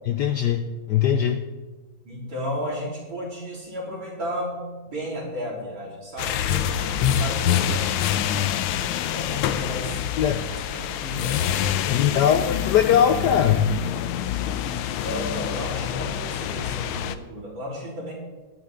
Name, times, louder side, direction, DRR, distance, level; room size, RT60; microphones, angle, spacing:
voice 1, 0.1-0.6 0.9-1.4 10.2-10.4 11.9-13.7, left 9 dB, 70° left, 7 dB, 1.0 m, -20 dB
voice 2, 2.0-6.9 7.2-8.1 9.1-10.0 10.5-11.4 15.0-18.1, equal, 65° right, -5 dB, 4.8 m, -34 dB
sound 1, 6.2-17.2, left 9 dB, 85° left, 1.5 m, -26 dB
20.5 x 9.1 x 3.8 m, 1.3 s
omnidirectional pair, 2.3 m